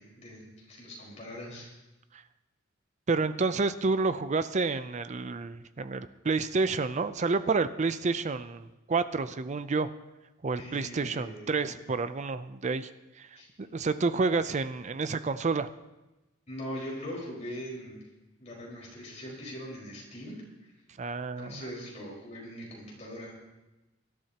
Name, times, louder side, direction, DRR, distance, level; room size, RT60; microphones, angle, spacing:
voice 1, 0.0-1.7 10.6-11.8 13.4-13.5 16.5-18.1 18.4-20.4 21.4-23.3, equal, 35° left, -4 dB, 4.8 m, -41 dB
voice 2, 3.1-9.9 10.4-12.9 13.2-13.3 13.6-15.7 21.0-21.6, right 4 dB, 35° right, 12 dB, 0.5 m, -29 dB
24.0 x 12.0 x 2.9 m, 1.0 s
head